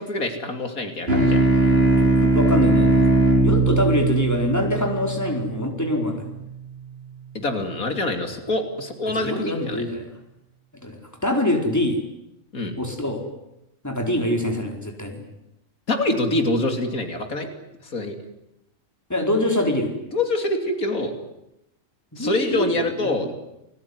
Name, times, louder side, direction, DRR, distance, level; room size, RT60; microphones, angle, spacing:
voice 1, 0.0-1.4 7.3-9.9 12.5-12.7 15.9-17.5 17.8-18.2 20.1-21.1 22.2-23.3, left 2 dB, 90° left, 6 dB, 3.5 m, -25 dB
sound 1, 1.1-5.9, right 2 dB, 45° right, 5.9 m, -19 dB
voice 2, 1.7-3.1 3.4-6.2 9.1-10.1 10.8-12.0 12.8-13.2 13.8-15.2 19.1-19.9 22.1-22.7 23.0-23.3, left 1 dB, 10° left, 2 dB, 4.6 m, -24 dB
29.5 x 20.5 x 9.8 m, 0.88 s
omnidirectional pair, 1.4 m